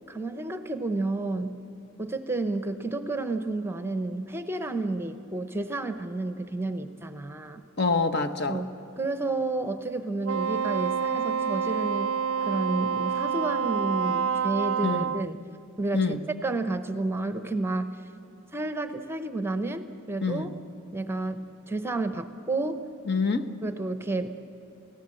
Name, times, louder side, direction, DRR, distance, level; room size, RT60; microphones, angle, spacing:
voice 1, 0.1-1.6 2.0-7.6 8.5-15.4 15.8-18.0 18.5-20.5 20.9-22.9 23.6-24.4, right 2 dB, 10° right, 9 dB, 0.8 m, -31 dB
voice 2, 7.8-8.6 14.8-15.1 15.9-16.2 20.2-20.5 23.1-23.4, left 4 dB, 55° left, 8 dB, 1.2 m, -26 dB
Wind instrument woodwind instrument, 10.2-15.3, right 7 dB, 70° right, 0.4 m, -28 dB
29.0 x 16.5 x 7.7 m, 2.9 s
head